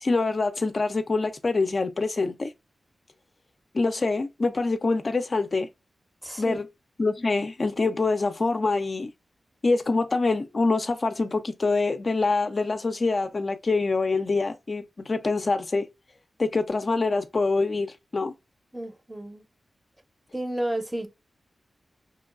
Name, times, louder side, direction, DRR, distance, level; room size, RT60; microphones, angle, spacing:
voice 1, 0.0-2.5 3.7-5.7 6.4-6.7 7.0-9.1 9.6-15.9 16.4-18.3, left 3 dB, 50° left, 0.3 m, -25 dB
voice 2, 6.2-6.6 18.7-19.4 20.3-21.1, right 1 dB, 10° right, 0.6 m, -31 dB
2.9 x 2.2 x 2.3 m
cardioid pair, 60°, 0 cm